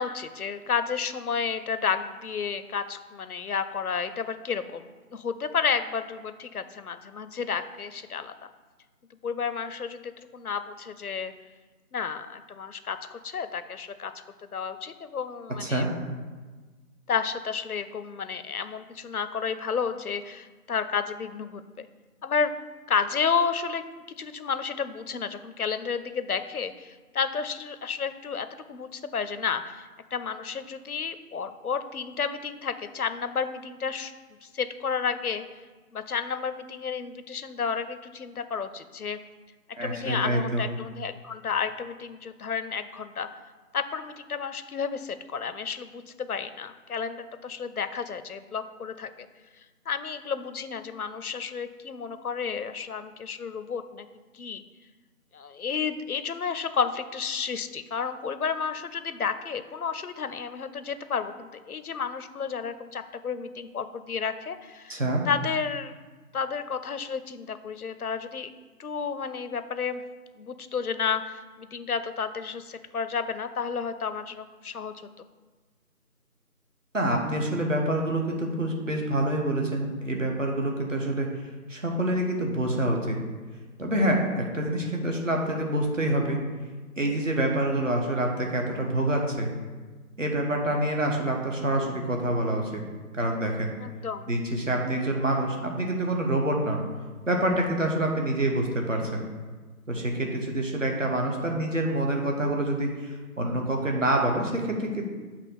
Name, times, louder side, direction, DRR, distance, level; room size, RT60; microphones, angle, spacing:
voice 1, 0.0-8.3 9.2-11.3 11.9-14.2 14.5-15.9 17.1-21.9 22.2-22.5 22.9-34.1 34.4-35.4 35.9-39.2 39.8-43.3 43.7-49.3 49.9-54.1 54.3-54.6 55.3-65.9 66.3-68.5 68.8-70.0 70.4-74.9 93.8-94.3, left 6 dB, 70° left, 11 dB, 0.6 m, -31 dB
voice 2, 39.8-40.6 64.9-65.2 76.9-81.3 81.7-83.2 83.8-86.4 87.0-89.5 90.2-92.8 93.1-93.7 94.3-96.8 97.3-99.2 99.9-105.1, right 1 dB, 55° right, 1 dB, 1.2 m, -26 dB
7.6 x 2.9 x 5.9 m, 1.3 s
figure-of-eight pair, 175°, 45 cm